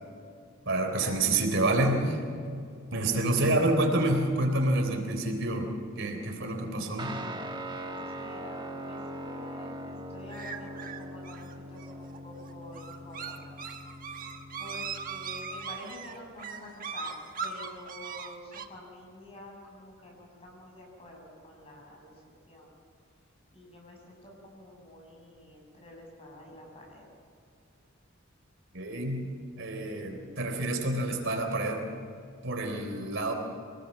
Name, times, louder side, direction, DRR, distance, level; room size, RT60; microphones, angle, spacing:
voice 1, 0.7-2.2 2.9-5.7 6.0-7.2 28.7-29.3 29.6-31.8 32.4-33.3, right 2 dB, 65° right, 3 dB, 3.6 m, -28 dB
Guitar, 7.0-15.8, right 1 dB, 25° right, 1.2 m, -41 dB
voice 2, 7.9-13.5 14.6-22.1 22.5-22.7 23.5-27.1, left 1 dB, 30° left, 0 dB, 6.7 m, -48 dB
sound 1, 10.3-18.6, right 5 dB, 45° right, 1.3 m, -39 dB
25.0 x 19.5 x 7.5 m, 2.3 s
head